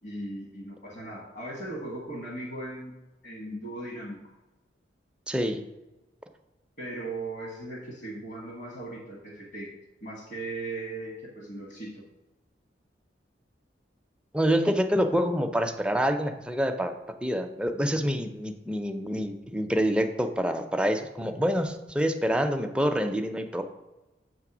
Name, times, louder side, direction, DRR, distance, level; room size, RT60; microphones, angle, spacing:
voice 1, 0.0-2.9 3.2-4.2 6.8-9.7 10.0-12.0, right 2 dB, 65° left, -3 dB, 1.5 m, -38 dB
voice 2, 5.3-5.6 14.3-16.9 17.2-23.6, equal, 5° right, 5 dB, 0.5 m, -26 dB
7.6 x 3.2 x 6.0 m, 1.0 s
head